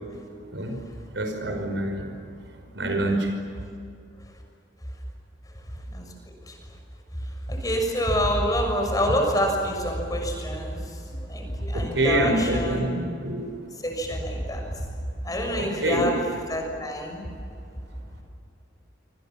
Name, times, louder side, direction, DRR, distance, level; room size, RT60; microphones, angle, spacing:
voice 1, 1.2-2.0 2.8-3.3 11.7-13.4 15.5-16.1, right 1 dB, 90° right, 4 dB, 5.4 m, -25 dB
voice 2, 7.5-10.8 11.3-12.9 13.8-14.6 15.2-16.2 16.5-17.3, equal, 20° left, 2 dB, 6.6 m, -26 dB
27.0 x 27.0 x 7.3 m, 2.5 s
head